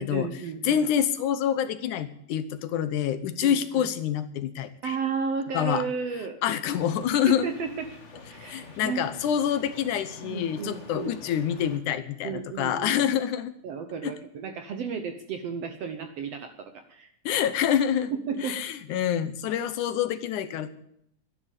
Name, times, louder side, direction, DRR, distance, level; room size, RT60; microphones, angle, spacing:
voice 1, 0.0-0.8 3.4-3.9 4.8-6.4 7.2-7.9 8.3-9.1 10.2-11.1 12.2-13.0 13.6-17.1 18.1-18.6, right 6 dB, 65° right, 8 dB, 1.6 m, -33 dB
voice 2, 0.6-5.0 5.5-5.9 6.4-7.5 8.4-13.5 14.0-14.1 17.3-18.1 18.4-20.7, left 9 dB, 70° left, 12 dB, 2.2 m, -27 dB
sound 1, 6.7-11.8, left 3 dB, 35° left, 1.2 m, -46 dB
12.5 x 11.0 x 8.2 m, 0.72 s
omnidirectional pair, 3.9 m